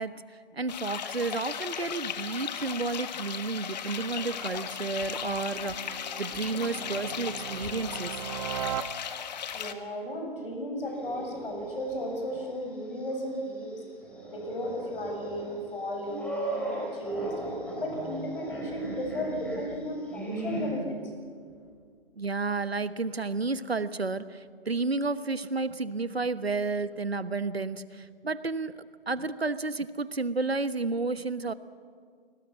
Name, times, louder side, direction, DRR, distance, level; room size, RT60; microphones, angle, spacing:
voice 1, 0.0-8.2 22.2-31.5, right 3 dB, 85° right, 15 dB, 1.2 m, -31 dB
sound 1, 0.7-9.7, left 8 dB, 45° left, 1.6 m, -36 dB
sound 2, 3.1-9.6, right 10 dB, 35° right, 0.8 m, -40 dB
voice 2, 9.5-13.8 14.3-17.4 17.8-21.0, equal, 70° left, 2 dB, 8.0 m, -35 dB
sound 3, 10.8-12.4 12.8-12.9 14.0-20.7, right 2 dB, 5° left, 4.8 m, -37 dB
29.0 x 19.5 x 7.4 m, 2.1 s
figure-of-eight pair, 130°, 30 cm